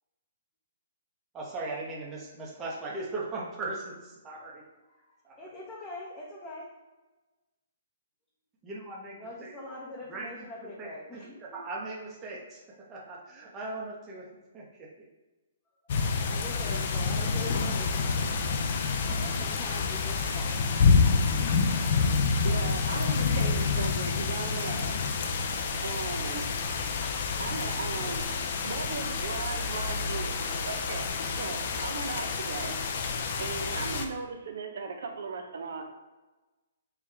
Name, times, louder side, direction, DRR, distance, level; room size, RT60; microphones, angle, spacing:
voice 1, 1.3-4.6 5.2-5.5 8.6-9.5 10.1-14.3 14.5-14.9, right 2 dB, 20° right, -4 dB, 0.9 m, -39 dB
voice 2, 4.9-6.7 9.1-11.6 16.1-18.4 19.0-20.5 27.7-27.8, left 1 dB, 15° left, -6 dB, 0.7 m, -43 dB
sound 1, 15.9-34.1, left 4 dB, 55° left, 0.5 m, -28 dB
voice 3, 22.4-25.0 25.8-26.4 27.4-28.2 28.6-32.8 33.4-35.8, right 4 dB, 70° right, 5 dB, 0.6 m, -37 dB
4.7 x 2.3 x 3.4 m, 1.2 s
hypercardioid pair, 145°, 0 cm